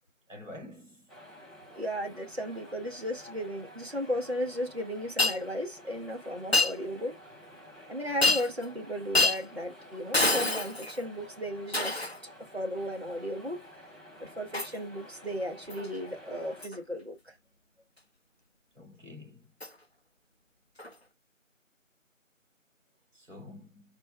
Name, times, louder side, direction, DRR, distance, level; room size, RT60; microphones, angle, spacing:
voice 1, 0.3-1.0 18.8-19.5 23.1-23.8, left 2 dB, 70° right, 2.2 m, -47 dB
sound 1, 1.1-16.7, equal, ahead, 0.7 m, -51 dB
voice 2, 1.7-7.2 7.9-12.1 12.5-13.7 14.2-17.3, equal, 50° right, 1.0 m, -35 dB
Shatter, 5.2-5.4 6.5-6.7 8.2-8.6 9.1-9.4 10.1-11.0 11.7-12.2 14.5-14.8 15.7-15.9 16.6-16.8 19.6-19.7 20.8-20.9, left 2 dB, 55° left, 0.5 m, -26 dB
4.3 x 2.0 x 3.2 m
figure-of-eight pair, 180°, 39 cm